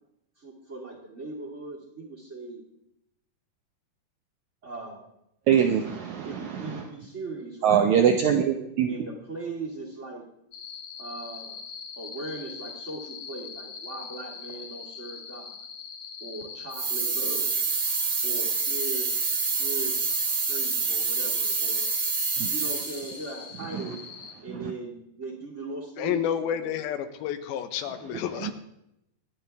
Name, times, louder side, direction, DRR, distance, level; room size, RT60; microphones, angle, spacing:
voice 1, 0.4-2.6 4.6-5.1 6.2-7.9 8.9-10.3 11.0-11.6 12.0-15.6 16.2-17.6 18.2-19.1 19.4-20.0 20.3-21.9 22.5-24.0 24.4-26.7, right 2 dB, 25° right, -3 dB, 1.9 m, -39 dB
voice 2, 5.5-6.8 7.6-8.9 22.4-22.5 23.7-23.8 24.6-24.7 28.4-28.5, right 8 dB, 75° right, 5 dB, 1.7 m, -23 dB
sound 1, 10.5-24.3, left 6 dB, 60° left, 1.7 m, -42 dB
sound 2, 16.7-23.2, right 4 dB, 50° right, 2.6 m, -27 dB
voice 3, 26.0-28.5, left 9 dB, 90° left, 9 dB, 2.8 m, -30 dB
24.0 x 9.7 x 3.4 m, 0.82 s
omnidirectional pair, 4.2 m